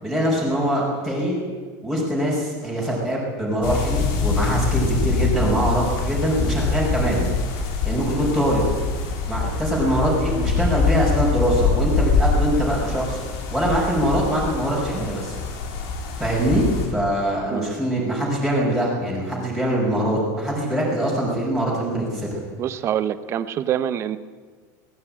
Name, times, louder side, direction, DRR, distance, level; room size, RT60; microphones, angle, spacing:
voice 1, 0.0-1.4 1.8-7.3 7.9-8.7 9.3-13.2 13.5-15.4 16.2-22.4, right 1 dB, ahead, -5 dB, 5.3 m, -23 dB
sound 1, 3.6-16.9, left 4 dB, 50° left, 3.8 m, -24 dB
voice 2, 22.6-24.2, right 10 dB, 25° right, 14 dB, 0.8 m, -25 dB
18.5 x 16.5 x 8.9 m, 1.5 s
supercardioid pair, 170°, 10 cm